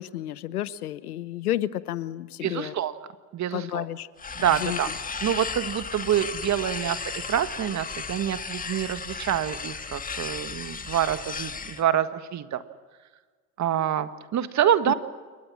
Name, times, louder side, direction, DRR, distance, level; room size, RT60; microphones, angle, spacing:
voice 1, 0.0-2.7 3.5-4.1 4.4-4.8 14.9-15.0, left 13 dB, 90° left, 17 dB, 1.0 m, -31 dB
voice 2, 2.4-2.9 3.3-3.9 4.4-4.9 5.2-12.6 13.6-14.9, right 10 dB, 40° right, 11 dB, 1.8 m, -26 dB
sound 1, 4.2-11.8, left 5 dB, 20° left, 1.5 m, -35 dB
29.0 x 23.0 x 6.2 m, 1.5 s
hypercardioid pair, 85°, 43 cm